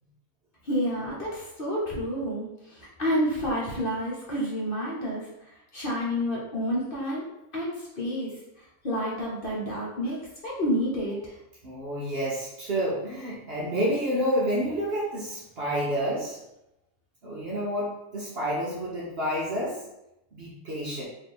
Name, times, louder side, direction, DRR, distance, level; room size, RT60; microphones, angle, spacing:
voice 1, 0.6-7.2 7.5-8.3 8.8-11.4, equal, 40° left, -5 dB, 1.0 m, -29 dB
voice 2, 11.6-16.4 17.2-19.8 20.3-21.0, equal, 50° right, -5 dB, 0.9 m, -29 dB
3.3 x 2.7 x 4.2 m, 0.88 s
omnidirectional pair, 1.6 m